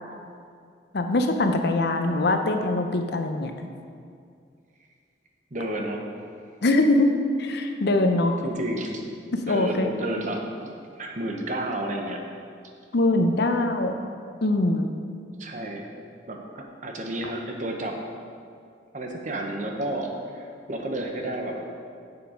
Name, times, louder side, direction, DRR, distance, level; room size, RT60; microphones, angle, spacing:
voice 1, 0.9-3.5 6.6-8.4 9.3-9.9 12.9-13.9 14.4-14.9, left 2 dB, 60° left, 5 dB, 0.6 m, -22 dB
voice 2, 5.5-6.0 8.4-9.0 9.5-10.7 10.9-12.2 15.4-15.9 16.3-18.0 18.9-21.6, right 1 dB, 40° right, 2 dB, 0.9 m, -31 dB
7.4 x 6.9 x 5.0 m, 2.3 s
head